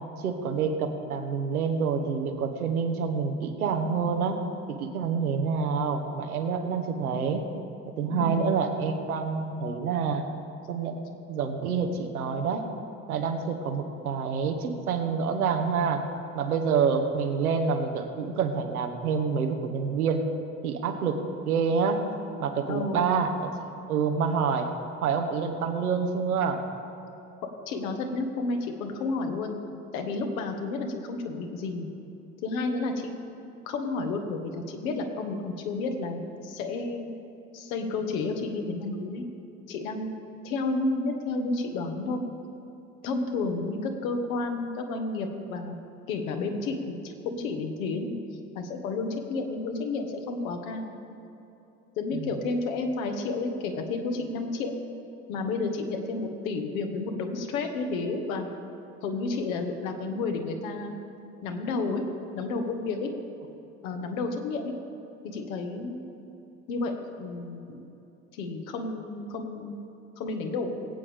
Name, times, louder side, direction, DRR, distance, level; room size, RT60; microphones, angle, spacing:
voice 1, 0.2-4.4 4.7-7.5 8.0-10.2 10.7-12.7 13.1-16.0 16.3-20.3 20.6-22.0 22.4-24.7 25.0-26.6 52.1-52.3, right 5 dB, 80° right, 5 dB, 1.2 m, -27 dB
voice 2, 8.1-8.4 22.7-23.1 27.7-29.6 29.9-31.9 32.4-33.1 33.6-37.1 37.5-39.2 39.7-40.2 40.4-42.2 43.0-45.8 46.1-48.1 48.5-50.9 52.0-54.7 55.3-58.5 59.0-61.0 61.4-62.0 62.3-63.1 63.8-64.7 65.2-66.0 66.7-66.9 67.2-67.8 68.3-69.8 70.2-70.9, left 3 dB, 65° left, 4 dB, 1.4 m, -31 dB
19.5 x 8.6 x 3.5 m, 2.9 s
figure-of-eight pair, 65°, 44 cm